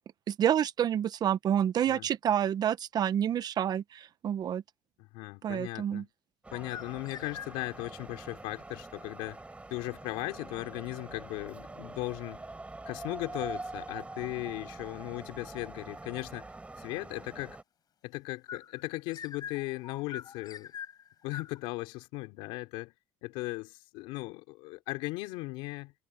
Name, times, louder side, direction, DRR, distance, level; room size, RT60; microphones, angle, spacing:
voice 1, 0.3-4.6 5.4-6.0, right 10 dB, 50° right, 1.1 m, -28 dB
voice 2, 5.0-6.1 6.5-9.4 9.7-12.4 12.9-16.5 16.8-17.6 18.0-20.7 21.2-22.9 23.2-25.9, left 21 dB, 85° left, 4.0 m, -37 dB
sound 1, 6.4-17.6, right 2 dB, 15° right, 5.4 m, -45 dB
sound 2, 6.5-7.9 18.5-21.6, left 8 dB, 45° left, 6.6 m, -44 dB
supercardioid pair, 100°, 9 cm